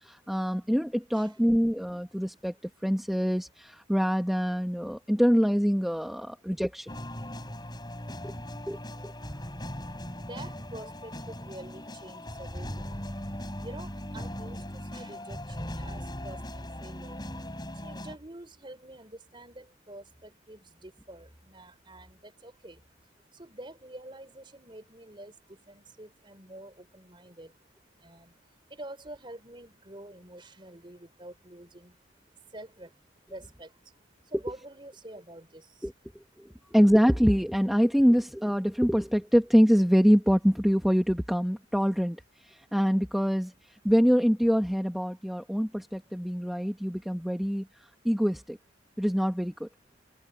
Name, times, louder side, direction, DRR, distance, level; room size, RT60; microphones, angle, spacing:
voice 1, 0.0-2.5 2.8-6.9 8.2-8.3 8.7-9.1 35.8-35.9 36.4-43.5 43.8-47.7 48.0-48.6 49.0-49.7, equal, ahead, 1.2 m, -25 dB
sound 1, 6.9-18.2, left 1 dB, 20° left, 7.2 m, -39 dB
voice 2, 10.2-13.0 13.6-14.6 14.9-17.2 17.8-22.8 23.4-25.3 25.7-27.5 28.0-28.3 28.7-32.0 32.5-32.9 33.3-33.7 34.3-35.6, right 1 dB, 25° right, 4.3 m, -47 dB
head